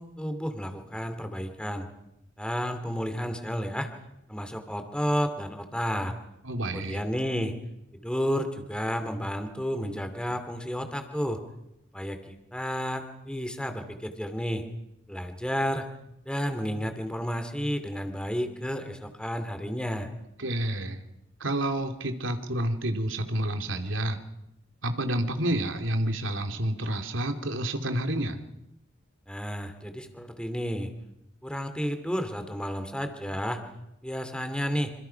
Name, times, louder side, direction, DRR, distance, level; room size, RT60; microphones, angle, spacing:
voice 1, 0.0-1.9 2.4-3.9 4.3-6.1 6.7-7.5 7.9-11.4 11.9-14.6 15.1-15.9 16.3-20.1 29.3-30.9 31.4-33.6 34.0-34.9, equal, 5° left, 7 dB, 2.7 m, -31 dB
voice 2, 6.4-7.0 20.4-21.0 21.4-24.2 24.8-28.4, right 1 dB, 85° right, 6 dB, 2.8 m, -29 dB
27.0 x 27.0 x 5.9 m, 0.85 s
head